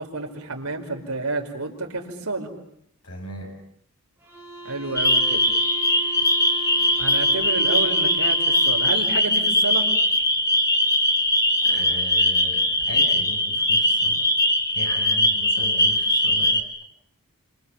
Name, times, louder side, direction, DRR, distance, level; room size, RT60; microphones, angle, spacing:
voice 1, 0.0-2.5 4.6-5.4 7.0-9.9, right 3 dB, 85° right, 2 dB, 5.2 m, -30 dB
voice 2, 3.0-3.5 11.6-14.2 14.7-16.6, left 1 dB, 85° left, 1 dB, 5.9 m, -38 dB
sound 1, 4.2-9.2, right 4 dB, 10° right, 5.5 m, -38 dB
sound 2, 5.0-16.6, left 1 dB, 15° left, 2.9 m, -21 dB
30.0 x 25.5 x 7.4 m, 0.69 s
head